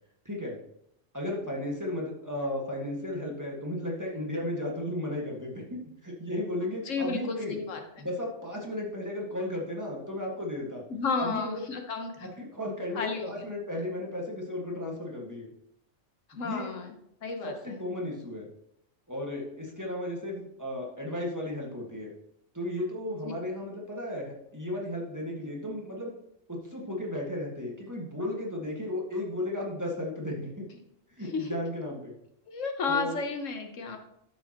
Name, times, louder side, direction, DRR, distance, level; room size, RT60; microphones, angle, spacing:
voice 1, 0.2-0.6 1.1-7.6 8.0-10.8 11.2-11.6 12.2-15.5 16.4-16.7 17.4-18.5 19.1-22.1 22.5-26.1 26.5-30.6 31.2-32.2 32.9-33.2, left 1 dB, 15° right, -3 dB, 1.7 m, -34 dB
voice 2, 6.9-8.1 10.9-12.3 12.9-13.3 16.3-16.9 17.2-17.8 31.3-31.6 32.5-34.0, left 4 dB, 75° left, 4 dB, 1.4 m, -32 dB
12.0 x 7.0 x 3.0 m, 0.77 s
omnidirectional pair, 1.3 m